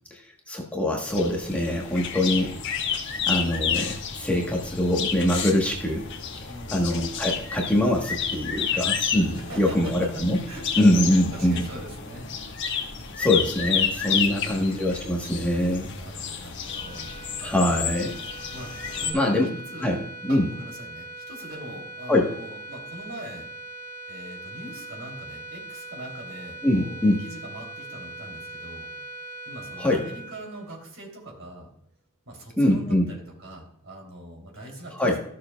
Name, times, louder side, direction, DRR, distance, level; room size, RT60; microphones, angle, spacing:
voice 1, 0.1-2.6 3.3-6.0 6.7-10.4 10.8-11.6 13.2-15.9 17.4-18.2 19.1-19.5 19.8-20.0 20.2-20.5 22.1-22.3 26.6-27.2 29.8-30.1 32.6-33.1 35.0-35.2, left 1 dB, 5° left, -2 dB, 1.1 m, -23 dB
sound 1, 1.1-19.1, left 7 dB, 55° left, 1.2 m, -31 dB
voice 2, 9.3-12.3 14.1-14.6 15.9-17.1 18.5-18.7 19.0-19.4 19.7-20.0 20.3-23.5 24.1-28.9 29.5-31.7 32.3-35.1, right 1 dB, 60° right, 1 dB, 3.0 m, -42 dB
sound 2, 16.6-31.2, right 2 dB, 35° left, 1.8 m, -41 dB
14.0 x 6.6 x 2.3 m, 0.73 s
head